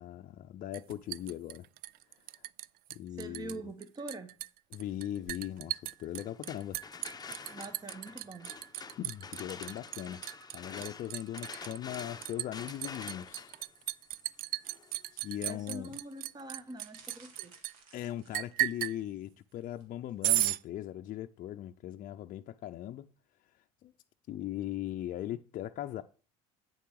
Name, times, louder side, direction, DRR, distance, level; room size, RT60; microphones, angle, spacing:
voice 1, 0.0-1.6 3.0-3.6 4.7-6.8 9.0-10.2 10.5-13.5 15.2-15.9 17.9-23.1 23.8-23.9 24.3-26.0, left 12 dB, 50° left, 0.6 m, -39 dB
Liquid, 0.7-2.7 2.9-3.6 3.8-17.7 18.3-19.0 20.2-20.6, right 16 dB, 55° right, 0.4 m, -35 dB
voice 2, 3.1-4.4 7.5-8.6 15.5-17.5, right 2 dB, 25° right, 1.1 m, -44 dB
sound 1, 6.2-16.0, left 5 dB, 25° left, 0.7 m, -48 dB
sound 2, 16.7-19.0 19.6-19.8 20.1-20.2, right 5 dB, 85° right, 1.9 m, -58 dB
8.9 x 6.8 x 4.8 m
hypercardioid pair, 75°, 18 cm